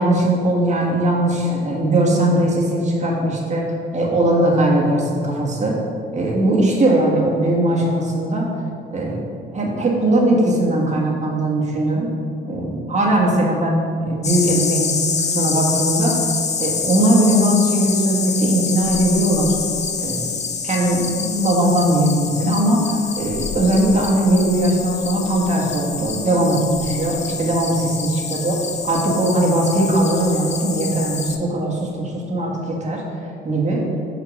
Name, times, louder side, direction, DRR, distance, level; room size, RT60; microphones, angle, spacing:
voice 1, 0.0-3.7 3.9-5.7 6.1-8.5 8.9-12.1 12.4-14.9 15.2-16.1 16.6-19.5 20.0-20.3 20.6-28.5 28.9-33.0 33.4-33.8, right 1 dB, 35° right, -3 dB, 1.6 m, -19 dB
sound 1, 14.2-31.4, left 5 dB, 35° left, 0.6 m, -26 dB
5.7 x 5.2 x 4.9 m, 2.4 s
cardioid pair, 90°, 20 cm